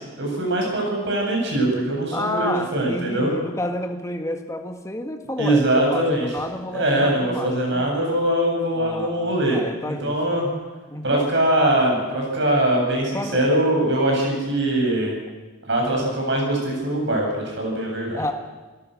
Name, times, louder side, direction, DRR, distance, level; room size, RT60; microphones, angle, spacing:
voice 1, 0.2-3.3 5.4-6.3 6.7-10.5 11.0-15.2 15.7-18.3, right 1 dB, 55° right, 0 dB, 8.0 m, -22 dB
voice 2, 2.1-7.9 8.8-10.4 10.9-11.3 13.1-13.4 18.2-18.3, left 1 dB, 15° left, 5 dB, 1.7 m, -30 dB
27.5 x 18.0 x 6.6 m, 1.3 s
head